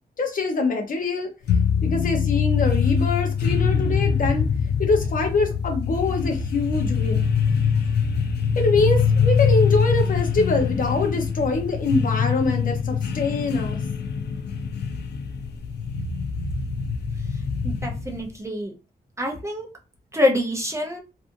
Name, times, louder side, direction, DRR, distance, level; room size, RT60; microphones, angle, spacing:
voice 1, 0.2-1.3 1.8-4.5 4.8-7.3 7.7-7.9 8.6-13.8, left 3 dB, 55° left, 0.7 m, -24 dB
sound 1, 1.5-18.3, left 6 dB, 85° left, 0.4 m, -23 dB
voice 2, 17.6-18.7 19.2-19.7 20.1-21.0, left 1 dB, 15° right, 0.5 m, -25 dB
2.6 x 2.4 x 2.5 m
wide cardioid pair, 155°, 17 cm